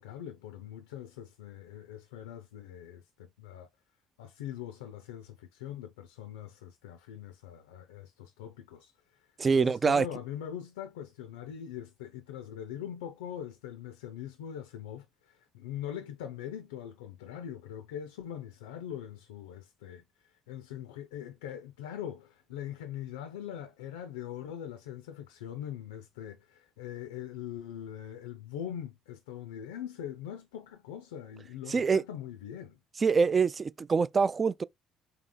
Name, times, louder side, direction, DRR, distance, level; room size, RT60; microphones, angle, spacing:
voice 1, 0.0-3.7 4.2-9.3 9.5-32.8, left 10 dB, 75° left, 0.4 m, -42 dB
voice 2, 9.4-10.1 31.7-32.0 33.0-34.6, right 5 dB, 30° right, 0.3 m, -25 dB
3.8 x 2.8 x 3.7 m
figure-of-eight pair, 50°, 0 cm